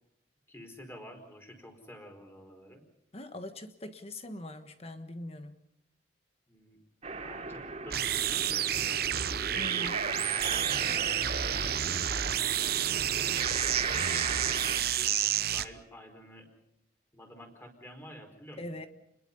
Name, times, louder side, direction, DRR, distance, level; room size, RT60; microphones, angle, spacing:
voice 1, 0.5-2.8 6.5-6.8 7.1-9.9 10.4-12.4 12.9-13.5 13.8-16.5 17.1-18.6, equal, 15° left, 4 dB, 4.7 m, -50 dB
voice 2, 3.1-5.6 9.6-10.0 18.6-18.9, left 1 dB, 35° left, 8 dB, 1.4 m, -42 dB
sound 1, 7.0-14.8, right 5 dB, 35° right, 3.0 m, -37 dB
sound 2, 7.9-15.7, right 10 dB, 55° right, 0.9 m, -30 dB
30.0 x 21.5 x 5.5 m, 0.79 s
head